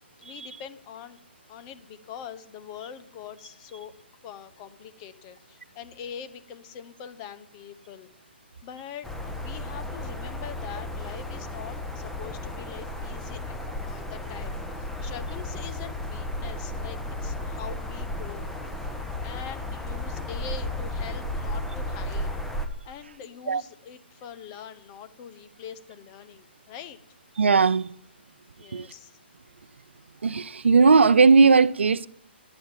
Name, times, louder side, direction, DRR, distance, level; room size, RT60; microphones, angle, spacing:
voice 1, 0.2-1.2 1.5-3.9 4.2-8.1 8.6-18.5 19.2-22.4 22.8-27.0 28.6-29.2, left 8 dB, 30° left, 1.0 m, -43 dB
sound 1, 9.0-22.7, left 1 dB, 5° left, 1.3 m, -34 dB
voice 2, 27.4-27.9 28.7-28.9 30.2-32.1, right 4 dB, 85° right, 0.5 m, -18 dB
11.0 x 8.9 x 9.0 m
hypercardioid pair, 140°, 6 cm